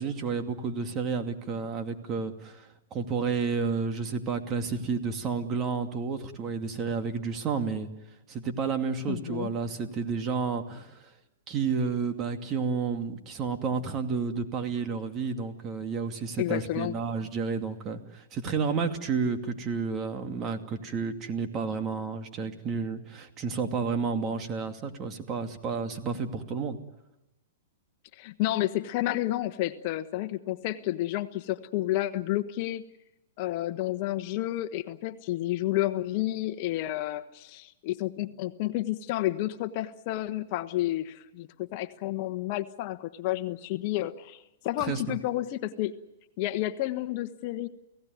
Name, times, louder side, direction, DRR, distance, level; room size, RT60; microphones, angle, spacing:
voice 1, 0.0-7.9 8.3-11.1 11.5-26.8 44.8-45.2, right 5 dB, 30° right, 6 dB, 2.5 m, -31 dB
voice 2, 9.1-9.5 16.4-16.9 28.1-32.8 33.4-45.9 46.4-47.7, left 15 dB, 45° left, 11 dB, 1.2 m, -30 dB
30.0 x 17.5 x 9.5 m, 0.97 s
hypercardioid pair, 125°, 0 cm